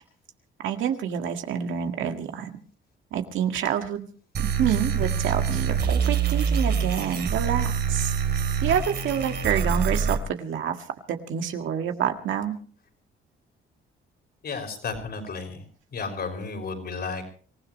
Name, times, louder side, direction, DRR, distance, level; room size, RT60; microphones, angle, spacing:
voice 1, 0.6-2.5 3.1-4.1 4.4-8.1 8.6-10.8 11.1-12.6, right 9 dB, 80° right, 5 dB, 1.9 m, -27 dB
sound 1, 4.3-10.2, right 6 dB, 55° right, 2.5 m, -25 dB
voice 2, 14.4-15.6 15.9-17.3, left 4 dB, 55° left, 4 dB, 5.6 m, -33 dB
26.0 x 16.0 x 3.2 m, 0.41 s
cardioid pair, 90°, 20 cm